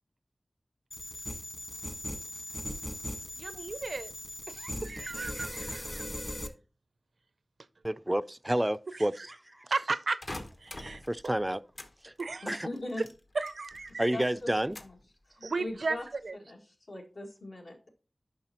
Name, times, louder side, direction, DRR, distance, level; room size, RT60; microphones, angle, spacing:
sound 1, 0.9-6.5, left 1 dB, 30° left, 1.4 m, -39 dB
voice 1, 3.4-4.1 4.5-6.0 9.7-10.2 10.6-11.0 12.2-12.4 13.4-14.1 15.4-16.0 16.2-16.3, right 3 dB, 85° right, 0.4 m, -34 dB
voice 2, 7.8-9.7 11.1-11.6 12.0-12.1 12.5-12.7 14.0-14.8, right 1 dB, 15° right, 0.3 m, -30 dB
sound 2, 10.2-11.9 12.2-14.0 14.2-15.1 15.5-16.0, left 1 dB, 55° left, 1.0 m, -45 dB
voice 3, 12.4-13.0 14.1-14.3 14.8-15.0 15.3-16.1 16.3-17.9, left 1 dB, 75° left, 1.9 m, -40 dB
10.5 x 5.5 x 2.9 m
wide cardioid pair, 60°, 0 cm